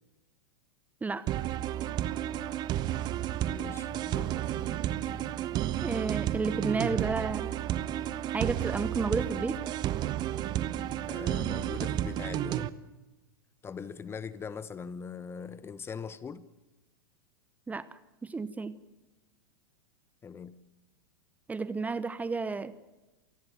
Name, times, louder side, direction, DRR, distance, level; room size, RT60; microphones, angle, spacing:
voice 1, 1.0-1.3 5.8-7.6 8.3-9.6 17.7-17.9 18.2-18.8 21.5-22.7, right 4 dB, 10° right, 15 dB, 1.1 m, -32 dB
sound 1, 1.3-12.7, right 12 dB, 35° right, 1.2 m, -32 dB
voice 2, 3.4-4.4 11.1-12.7 13.6-16.5 20.2-20.6, left 6 dB, 20° left, 16 dB, 1.2 m, -41 dB
28.0 x 19.0 x 7.4 m, 1.1 s
hypercardioid pair, 100°, 12 cm